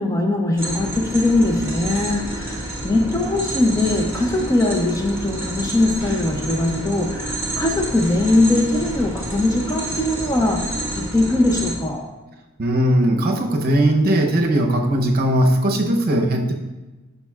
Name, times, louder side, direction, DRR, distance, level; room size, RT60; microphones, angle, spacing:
voice 1, 0.0-12.1, left 2 dB, 15° left, 2 dB, 0.5 m, -21 dB
sound 1, 0.6-11.7, right 1 dB, 10° right, 1.3 m, -29 dB
voice 2, 12.6-16.5, right 1 dB, 45° right, 3 dB, 0.8 m, -18 dB
10.5 x 5.4 x 2.4 m, 1.2 s
head